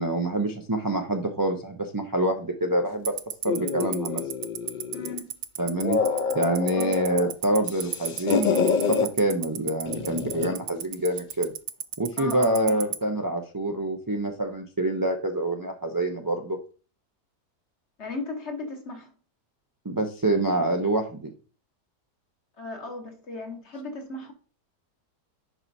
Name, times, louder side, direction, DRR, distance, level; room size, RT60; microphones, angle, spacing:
voice 1, 0.0-3.1 3.4-4.2 5.6-6.0 6.3-11.5 12.0-16.6 19.8-21.3, right 1 dB, 35° right, 0.3 m, -26 dB
Tick-tock, 3.1-12.9, right 11 dB, 65° right, 0.8 m, -29 dB
sound 1, 3.4-5.2 5.6-7.3 7.6-9.1 9.9-10.6, left 5 dB, 90° left, 0.4 m, -27 dB
voice 2, 4.9-5.4 6.8-6.9 12.2-12.8 18.0-19.1 22.6-24.3, left 3 dB, 45° left, 1.5 m, -36 dB
10.5 x 4.5 x 2.7 m
omnidirectional pair, 1.7 m